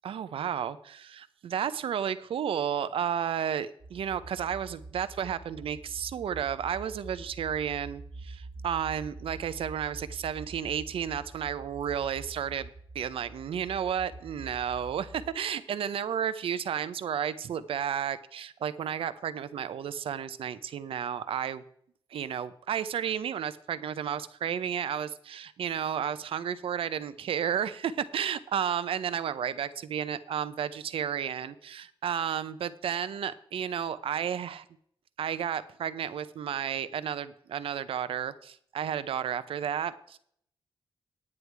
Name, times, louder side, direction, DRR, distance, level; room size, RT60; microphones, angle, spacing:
voice 1, 0.0-12.7 12.9-21.6 22.1-34.6 35.2-40.2, right 8 dB, 75° right, 14 dB, 0.7 m, -32 dB
sound 1, 3.8-15.4, right 2 dB, 45° right, 1.4 m, -46 dB
9.8 x 9.7 x 4.6 m, 0.66 s
wide cardioid pair, 165°, 9 cm